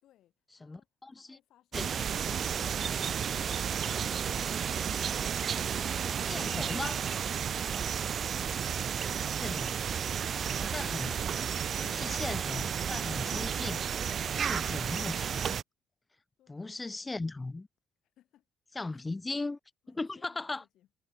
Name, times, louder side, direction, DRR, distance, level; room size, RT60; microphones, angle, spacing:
voice 1, 0.0-3.6 16.4-16.7 18.0-18.5 18.9-19.0 19.8-20.9, left 13 dB, 70° left, 5.6 m, -67 dB
voice 2, 0.6-1.4 1.7-1.9 2.6-2.7 6.2-7.0 9.1-9.8 10.6-11.2 11.8-13.8 14.4-15.6 16.5-17.7 18.8-19.6 19.9-20.6, left 3 dB, 20° left, 0.3 m, -38 dB
sound 1, 1.7-15.6, right 8 dB, 55° right, 0.4 m, -32 dB
hypercardioid pair, 55°, 0 cm